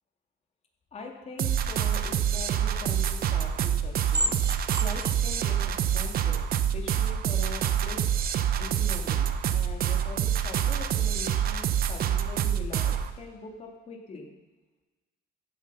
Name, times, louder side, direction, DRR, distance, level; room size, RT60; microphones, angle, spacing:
voice 1, 0.9-6.4 6.7-8.0 8.6-9.3 9.5-14.3, left 3 dB, 40° left, 0 dB, 2.8 m, -42 dB
sound 1, 1.4-13.1, right 9 dB, 60° right, 0.9 m, -26 dB
sound 2, 3.1-7.1, right 2 dB, 25° right, 0.7 m, -36 dB
15.0 x 7.9 x 5.7 m, 1.2 s
cardioid pair, 110°, 17 cm